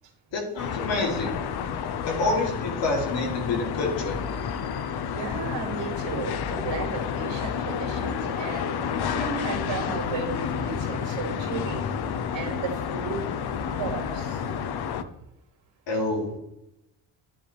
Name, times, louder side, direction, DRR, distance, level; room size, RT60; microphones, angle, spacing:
voice 1, 0.3-1.3 2.1-4.2 15.9-16.4, left 2 dB, 75° left, 0 dB, 3.2 m, -27 dB
sound 1, 0.6-15.0, left 7 dB, 60° left, 0.8 m, -30 dB
voice 2, 5.0-8.7 9.1-11.9 12.3-13.2 13.7-14.4, right 5 dB, 80° right, 1 dB, 3.1 m, -34 dB
10.5 x 10.0 x 3.4 m, 0.84 s
cardioid pair, 160°, 44 cm